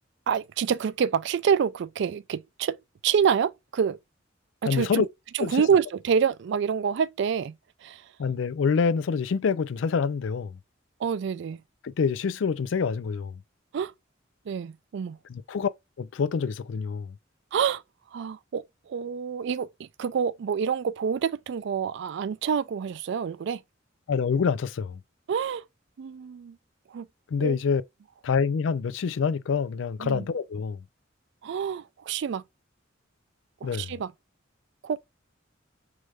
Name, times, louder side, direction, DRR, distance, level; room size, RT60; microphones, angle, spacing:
voice 1, 0.3-4.0 4.6-5.1 5.3-7.5 7.8-8.0 11.0-11.6 13.7-13.9 14.5-15.2 17.5-17.8 18.1-23.6 25.3-25.6 26.0-26.6 26.9-27.1 27.4-27.5 30.0-30.3 31.4-32.4 33.6-34.1 34.8-35.0, right 7 dB, 65° right, 0.3 m, -27 dB
voice 2, 4.7-5.1 5.4-5.6 8.2-10.6 11.8-13.4 15.3-15.7 16.0-17.1 24.1-25.0 27.3-27.8 28.2-30.8 33.6-33.9, left 6 dB, 75° left, 0.4 m, -26 dB
4.8 x 3.2 x 2.3 m
head